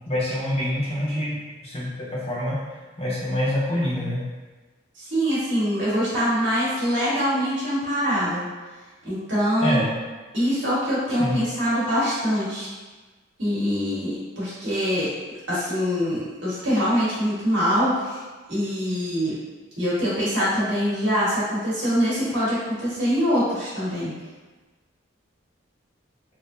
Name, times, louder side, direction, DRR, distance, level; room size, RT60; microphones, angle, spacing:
voice 1, 0.0-2.6 3.0-4.2 9.6-9.9 11.2-11.4, left 1 dB, 30° left, -7 dB, 0.7 m, -26 dB
voice 2, 5.0-8.4 9.0-9.8 10.3-12.7 13.4-15.1 15.5-18.2 18.5-19.3 19.8-24.1, equal, 60° right, -10 dB, 1.5 m, -24 dB
3.5 x 2.6 x 2.6 m, 1.3 s
head